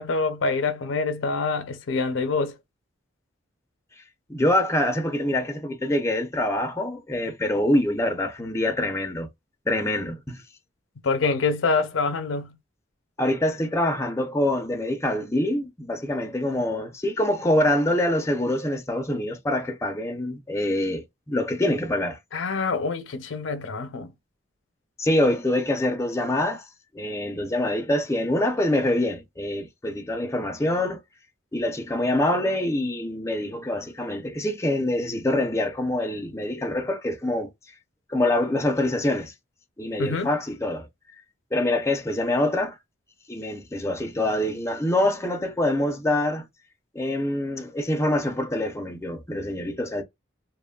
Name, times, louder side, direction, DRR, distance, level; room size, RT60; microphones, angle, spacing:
voice 1, 0.0-2.5 11.0-12.6 22.3-24.1 40.0-40.3, left 4 dB, 85° left, 0.6 m, -26 dB
voice 2, 4.3-9.3 9.7-10.4 13.2-22.2 25.0-26.6 26.9-31.0 31.5-37.5 38.1-39.3 39.8-40.9 41.5-42.8 43.3-46.4 46.9-50.0, left 1 dB, 15° left, 0.5 m, -25 dB
3.0 x 2.2 x 2.2 m
head